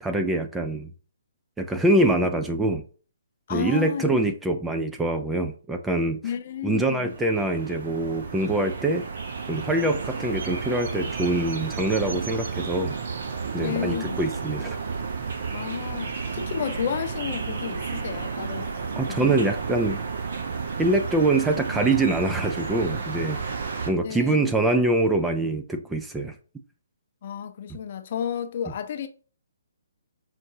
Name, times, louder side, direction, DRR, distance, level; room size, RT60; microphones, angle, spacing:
voice 1, 0.0-0.9 1.6-2.8 3.5-6.2 6.6-9.0 9.5-13.0 13.5-14.8 19.0-20.0 20.8-23.4 23.9-26.3, right 2 dB, 5° right, 0.4 m, -24 dB
voice 2, 3.5-4.2 6.2-7.1 13.6-14.2 15.5-18.7 19.1-19.4 24.0-24.7 27.2-29.1, left 8 dB, 45° left, 0.6 m, -32 dB
sound 1, 7.1-23.9, right 5 dB, 55° right, 0.8 m, -32 dB
5.8 x 2.6 x 2.7 m
figure-of-eight pair, 135°, 0 cm